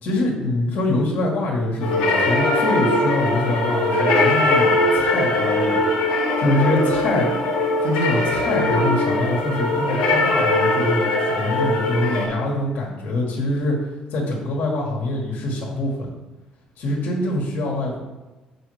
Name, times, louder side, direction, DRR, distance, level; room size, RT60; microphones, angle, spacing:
voice 1, 0.0-5.8 6.4-7.5 7.8-16.1 16.8-18.0, left 1 dB, 60° left, -2 dB, 1.7 m, -24 dB
sound 1, 1.8-12.3, left 2 dB, 85° left, 1.3 m, -20 dB
6.4 x 5.1 x 3.3 m, 1.2 s
hypercardioid pair, 55°, 3 cm